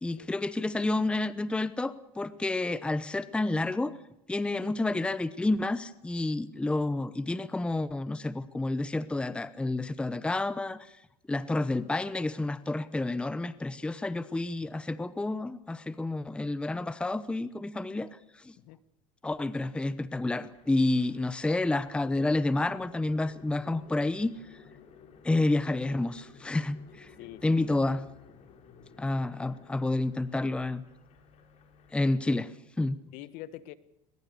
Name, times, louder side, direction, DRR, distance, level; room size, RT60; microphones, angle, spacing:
voice 1, 0.0-3.9 4.3-10.9 11.3-18.2 18.4-18.6 19.2-24.3 25.2-27.1 27.4-28.0 29.0-30.8 31.9-32.5 32.8-33.0, left 2 dB, 5° left, 15 dB, 0.8 m, -29 dB
sound 1, 20.4-31.9, left 6 dB, 45° left, 4.4 m, -55 dB
voice 2, 27.2-27.8 33.1-33.7, left 14 dB, 60° left, 15 dB, 1.5 m, -45 dB
21.5 x 21.5 x 6.8 m, 0.86 s
supercardioid pair, 125°, 16 cm